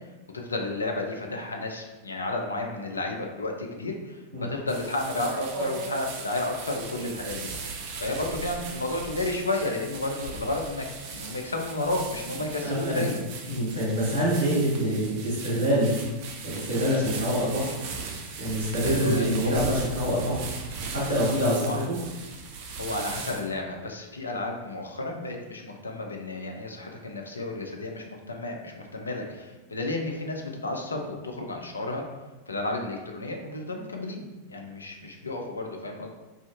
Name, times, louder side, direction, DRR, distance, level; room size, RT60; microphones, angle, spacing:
voice 1, 0.3-13.2 18.8-19.5 21.5-21.8 22.8-32.0 32.5-36.1, left 2 dB, 75° left, 2 dB, 0.3 m, -32 dB
sound 1, 4.7-23.6, right 4 dB, 45° right, 0.4 m, -38 dB
voice 2, 12.6-13.1 13.5-15.9 16.4-17.7 18.4-20.4 20.9-22.0, equal, 70° right, -9 dB, 1.0 m, -25 dB
2.4 x 2.4 x 2.4 m, 1.1 s
figure-of-eight pair, 90°, 0 cm